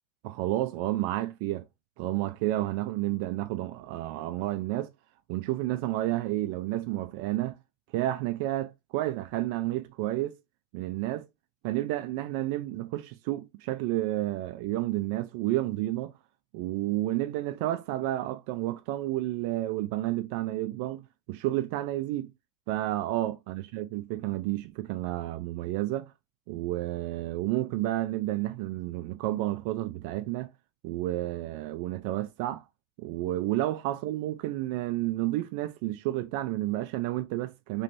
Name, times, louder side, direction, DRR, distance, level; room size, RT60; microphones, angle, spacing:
voice 1, 0.2-1.6 2.0-4.9 5.3-7.6 7.9-10.4 10.7-11.3 11.6-16.1 16.5-22.3 22.7-26.1 26.5-30.5 30.8-32.6 33.0-37.8, right 15 dB, 70° right, 0.3 m, -31 dB
3.1 x 3.1 x 2.6 m
supercardioid pair, 120°, 0 cm